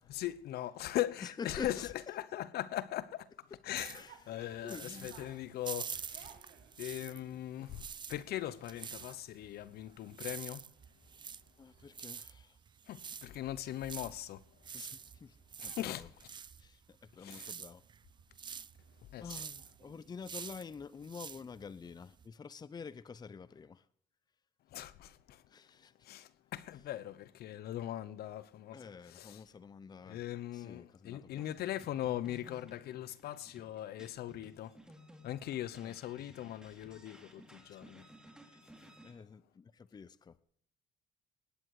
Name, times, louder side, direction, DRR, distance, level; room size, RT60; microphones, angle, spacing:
voice 1, 0.1-1.9 2.1-4.0 4.3-6.3 6.8-10.7 12.9-14.4 15.6-16.1 17.1-17.5 19.1-19.4 24.7-25.4 26.0-28.8 29.1-29.4 30.0-34.8 35.2-38.1, left 13 dB, 70° left, 0.9 m, -40 dB
voice 2, 1.2-1.9 3.9-4.3 4.6-5.1 11.6-12.6 14.7-15.3 15.6-16.1 16.6-17.8 19.2-23.8 25.5-25.9 28.7-30.2 30.5-31.4 35.8-36.0 37.7-37.8 38.5-40.4, left 5 dB, 25° left, 0.6 m, -48 dB
sound 1, 3.7-7.3 7.6-22.3, right 7 dB, 25° right, 0.4 m, -47 dB
sound 2, 3.9-20.2, right 8 dB, 70° right, 3.1 m, -65 dB
sound 3, 31.4-39.1, equal, 5° right, 3.0 m, -58 dB
18.0 x 10.0 x 4.8 m
cardioid pair, 110°, 17 cm